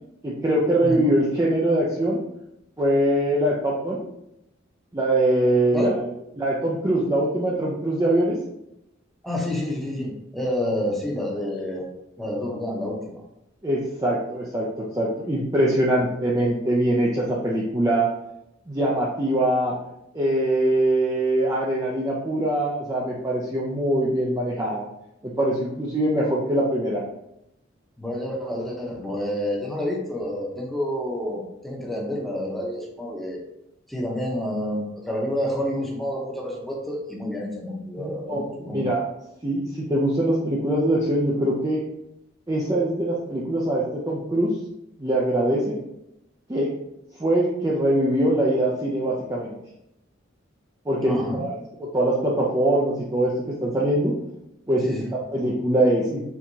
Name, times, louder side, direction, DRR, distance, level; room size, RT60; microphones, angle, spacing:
voice 1, 0.2-2.2 2.8-4.0 4.9-6.0 6.4-8.4 13.6-18.1 18.7-19.7 20.1-24.8 25.2-27.0 38.0-39.0 39.4-41.8 42.5-44.5 45.0-45.8 46.5-46.7 47.2-49.5 50.9-51.5 51.8-54.1 54.7-56.2, right 1 dB, 15° right, -5 dB, 0.5 m, -23 dB
voice 2, 9.2-11.9 12.2-13.2 28.0-33.4 33.9-38.8 51.0-51.4 54.8-55.1, left 1 dB, ahead, -3 dB, 0.8 m, -29 dB
4.5 x 3.5 x 2.7 m, 0.83 s
head